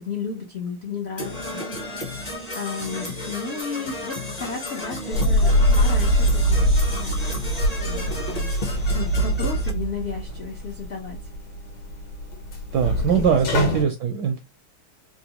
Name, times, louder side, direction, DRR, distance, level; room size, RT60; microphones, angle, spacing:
voice 1, 0.0-1.6 2.5-7.4 7.9-8.5 8.9-11.2 13.0-13.3 13.6-13.9, left 5 dB, 80° left, 0.5 m, -33 dB
Percussion / Brass instrument, 1.2-9.7, left 2 dB, 35° left, 0.6 m, -33 dB
sound 1, 5.1-13.8, equal, 60° left, 1.6 m, -23 dB
voice 2, 12.7-14.4, right 7 dB, 75° right, 1.0 m, -21 dB
3.8 x 2.3 x 2.8 m
omnidirectional pair, 2.3 m